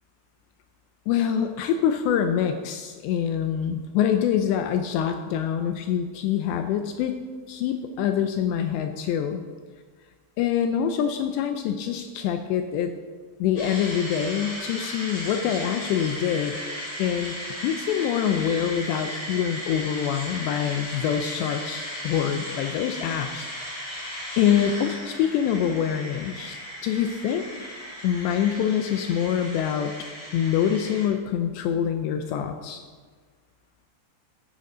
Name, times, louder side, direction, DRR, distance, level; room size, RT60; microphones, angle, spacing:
voice 1, 1.1-7.1 7.5-9.4 10.4-12.9 13.4-16.5 17.0-17.4 17.6-23.5 23.8-26.6 26.8-27.5 28.0-29.9 30.3-32.8, left 9 dB, 85° left, 6 dB, 2.5 m, -25 dB
sound 1, 13.6-31.1, equal, 25° left, 4.9 m, -36 dB
15.0 x 12.0 x 3.9 m, 1.5 s
omnidirectional pair, 5.8 m